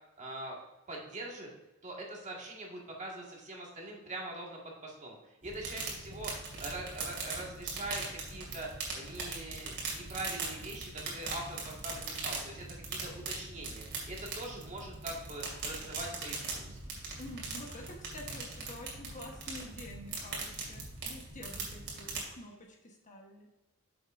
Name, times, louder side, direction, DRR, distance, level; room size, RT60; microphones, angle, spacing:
voice 1, 0.2-0.6 0.9-1.5 1.8-16.8, right 2 dB, 35° right, -1 dB, 1.9 m, -43 dB
sound 1, 5.4-22.2, right 3 dB, 50° right, 2.5 m, -40 dB
voice 2, 17.2-23.5, left 1 dB, 35° left, 1 dB, 1.2 m, -48 dB
9.4 x 6.7 x 2.6 m, 1.0 s
head